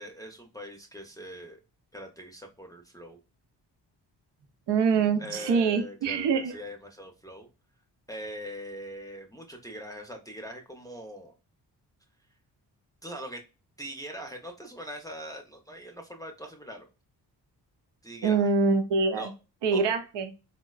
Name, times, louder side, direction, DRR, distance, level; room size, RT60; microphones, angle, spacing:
voice 1, 0.0-1.6 1.9-3.2 5.2-7.5 8.1-11.3 13.0-13.4 13.8-16.9 18.0-18.5 19.1-19.3 19.7-20.0, equal, 10° left, 2 dB, 0.6 m, -42 dB
voice 2, 4.7-6.5 18.2-19.3 19.6-20.3, right 5 dB, 65° right, 8 dB, 0.7 m, -24 dB
3.8 x 2.1 x 2.3 m, 0.31 s
supercardioid pair, 50°, 45 cm